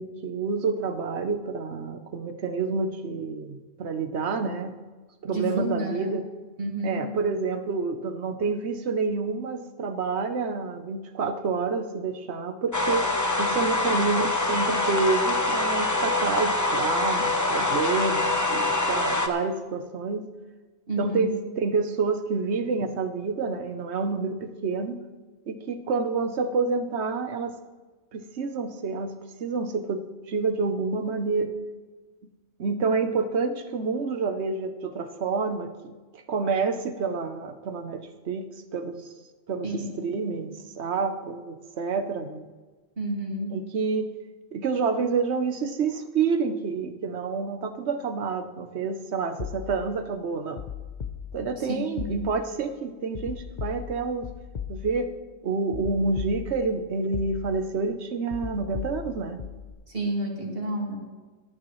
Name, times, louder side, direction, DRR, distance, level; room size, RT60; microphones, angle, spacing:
voice 1, 0.0-4.7 5.2-6.2 6.8-13.1 13.4-20.3 21.0-25.0 25.5-27.6 28.1-29.1 29.4-31.5 32.6-38.5 38.7-39.1 39.5-42.5 43.5-44.1 44.5-50.6 51.3-54.3 54.7-55.1 55.4-59.4, right 4 dB, 75° right, 9 dB, 1.2 m, -28 dB
voice 2, 5.3-6.1 6.6-7.0 20.9-21.4 39.6-39.9 43.0-43.6 51.6-52.3 59.9-61.0, right 1 dB, 55° right, -1 dB, 2.4 m, -30 dB
sound 1, 12.7-19.3, left 2 dB, 15° left, 0.9 m, -25 dB
sound 2, 49.4-50.0 50.6-51.6 52.0-52.6 53.1-55.2 55.7-56.8 57.1-57.8 58.3-59.7, left 7 dB, 45° left, 0.8 m, -37 dB
26.0 x 9.0 x 3.2 m, 1.3 s
omnidirectional pair, 1.2 m